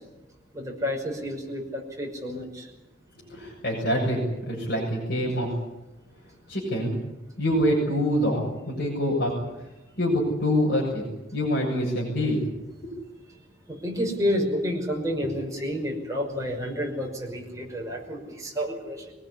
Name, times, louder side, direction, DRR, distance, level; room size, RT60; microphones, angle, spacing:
voice 1, 0.5-2.6 13.7-19.0, equal, 20° right, 0 dB, 5.9 m, -30 dB
voice 2, 3.3-4.2 4.5-5.5 6.5-6.9 7.4-9.3 10.0-11.0 11.3-12.4, equal, 60° left, -4 dB, 7.0 m, -25 dB
23.5 x 19.5 x 9.9 m, 1.0 s
head